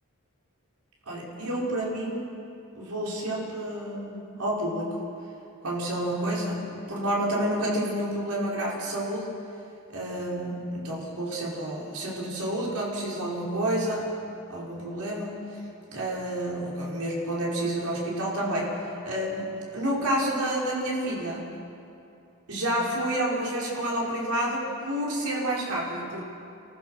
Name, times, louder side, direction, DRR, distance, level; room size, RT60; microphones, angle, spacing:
voice 1, 1.1-2.3 2.7-5.0 5.6-9.3 9.9-14.1 14.5-15.3 15.9-18.7 19.0-21.4 22.5-26.2, right 1 dB, 75° right, -4 dB, 5.0 m, -29 dB
29.5 x 14.5 x 6.5 m, 2.7 s
head